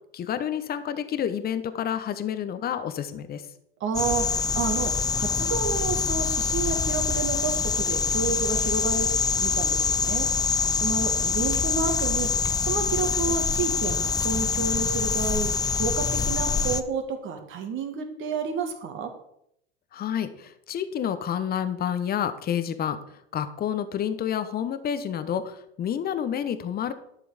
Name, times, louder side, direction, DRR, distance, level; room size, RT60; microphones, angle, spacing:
voice 1, 0.0-3.5 19.9-23.0 23.3-26.9, left 9 dB, 30° left, 11 dB, 1.1 m, -29 dB
voice 2, 3.8-4.3 4.5-9.1 9.4-10.3 10.8-12.3 12.6-19.1, right 5 dB, 40° right, 5 dB, 2.2 m, -30 dB
sound 1, 3.9-16.8, left 5 dB, 15° left, 0.6 m, -25 dB
11.0 x 6.8 x 5.1 m, 0.74 s
hypercardioid pair, 90°, 29 cm